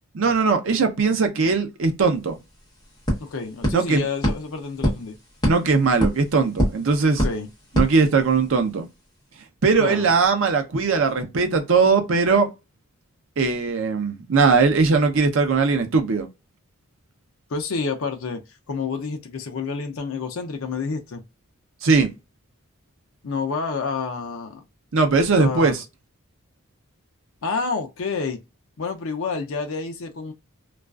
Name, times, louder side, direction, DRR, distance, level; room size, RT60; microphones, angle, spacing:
voice 1, 0.2-2.4 3.7-4.0 5.4-7.2 7.8-8.9 9.6-12.5 13.4-16.3 21.8-22.1 24.9-25.8, right 4 dB, 60° right, 0.5 m, -20 dB
sound 1, 1.9-2.0 2.3-8.7, equal, 20° left, 0.9 m, -27 dB
voice 2, 3.2-5.2 7.1-7.5 9.8-10.1 17.5-18.4 18.7-21.2 23.2-24.6 25.3-25.8 27.4-28.4 28.8-30.3, left 4 dB, 65° left, 0.5 m, -29 dB
2.4 x 2.3 x 2.2 m
head